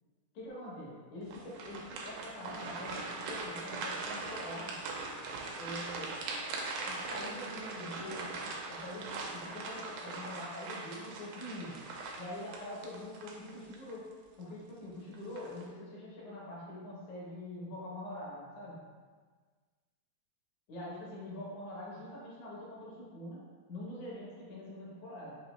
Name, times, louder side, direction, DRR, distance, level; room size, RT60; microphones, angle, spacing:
voice 1, 0.3-4.8 5.5-6.1 6.8-11.8 12.2-14.1 14.4-18.8 20.7-23.4 23.7-25.4, left 1 dB, 65° left, -6 dB, 2.3 m, -44 dB
sound 1, 1.3-13.9 14.4-14.5 15.1-15.6, right 3 dB, 80° right, 2.1 m, -41 dB
6.0 x 2.8 x 3.1 m, 1.5 s
omnidirectional pair, 4.0 m